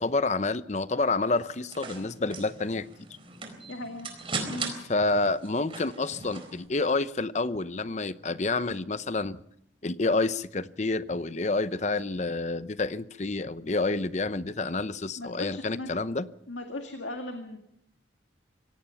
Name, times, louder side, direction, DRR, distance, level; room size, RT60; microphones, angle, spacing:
voice 1, 0.0-2.9 4.9-9.4 9.8-16.3, left 3 dB, 40° left, 14 dB, 0.7 m, -28 dB
sound 1, 1.4-6.6, right 4 dB, 30° right, 4.2 m, -39 dB
voice 2, 3.7-4.1 4.5-4.7 15.2-15.9 16.5-17.6, left 2 dB, 85° left, 4 dB, 2.1 m, -37 dB
26.0 x 17.5 x 5.8 m, 0.72 s
head